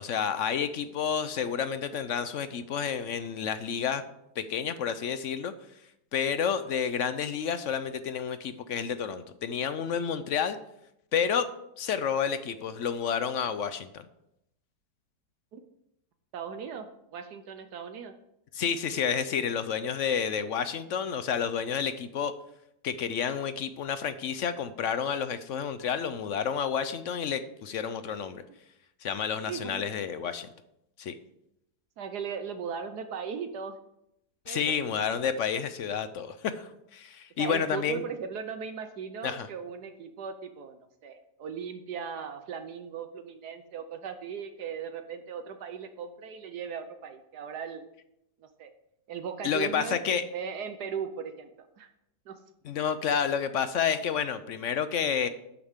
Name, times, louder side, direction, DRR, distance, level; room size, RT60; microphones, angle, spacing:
voice 1, 0.0-4.0 4.4-5.5 6.1-10.6 11.1-11.5 11.8-14.0 18.5-22.3 22.8-28.4 29.0-30.5 31.0-31.2 34.5-38.0 39.2-39.5 49.4-50.2 52.6-55.3, left 7 dB, 65° left, 12 dB, 0.8 m, -30 dB
voice 2, 16.3-18.1 29.5-29.8 32.0-33.8 34.5-35.3 37.4-47.8 48.4-48.7 49.1-51.9 52.3-52.4, right 6 dB, 70° right, 8 dB, 1.3 m, -38 dB
12.0 x 9.2 x 3.6 m, 0.81 s
omnidirectional pair, 1.8 m